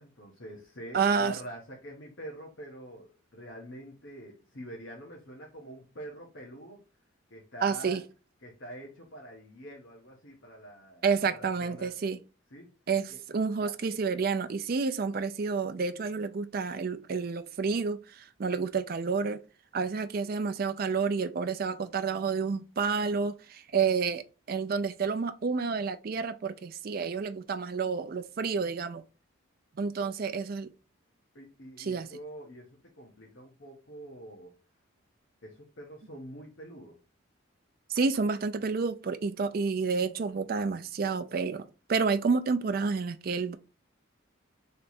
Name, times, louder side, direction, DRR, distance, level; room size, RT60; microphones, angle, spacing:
voice 1, 0.0-6.8 7.3-8.0 8.4-12.1 12.5-12.7 13.1-13.2 13.6-13.7 29.9-30.1 31.3-34.6 35.4-37.0, right 1 dB, 60° left, 1.1 m, -46 dB
voice 2, 0.9-1.3 7.6-8.0 11.0-12.2 12.9-19.4 19.7-24.2 24.5-29.0 29.8-30.7 31.8-32.1 37.9-41.6 41.9-43.6, right 5 dB, 45° right, 0.4 m, -29 dB
3.3 x 3.0 x 4.2 m
head